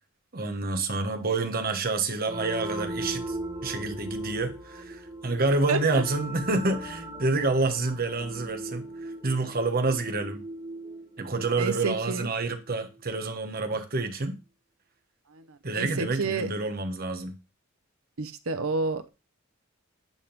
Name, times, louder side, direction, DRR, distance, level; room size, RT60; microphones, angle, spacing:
voice 1, 0.3-3.4 3.6-10.4 11.2-14.4 15.6-17.3, right 3 dB, 45° right, 1.2 m, -28 dB
sound 1, 2.3-12.7, right 1 dB, 20° right, 1.2 m, -38 dB
voice 2, 5.7-6.0 11.6-12.3 15.3-16.5 18.2-19.1, right 3 dB, 80° right, 0.9 m, -30 dB
9.6 x 3.7 x 5.2 m
head